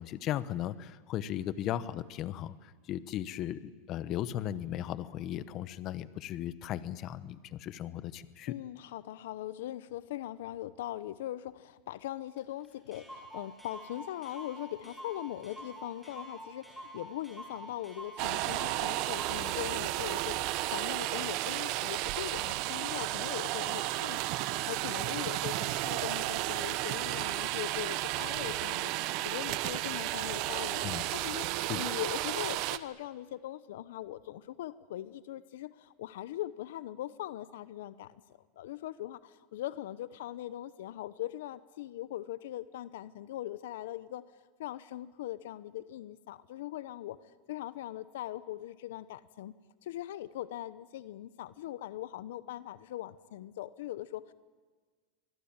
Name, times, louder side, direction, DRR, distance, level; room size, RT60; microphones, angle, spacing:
voice 1, 0.0-8.5 30.8-31.0 31.7-31.8, left 12 dB, 40° left, 15 dB, 1.1 m, -36 dB
voice 2, 8.5-31.5 31.7-38.2 38.6-44.2 44.6-49.5 49.8-54.3, left 14 dB, 80° left, 16 dB, 0.8 m, -41 dB
Clock, 12.4-12.5 12.6-12.7 12.9-19.6, right 1 dB, ahead, 6.2 m, -47 dB
sound 1, 18.2-32.8, right 17 dB, 55° right, 1.1 m, -33 dB
25.0 x 21.0 x 8.9 m, 1.4 s
supercardioid pair, 135°, 0 cm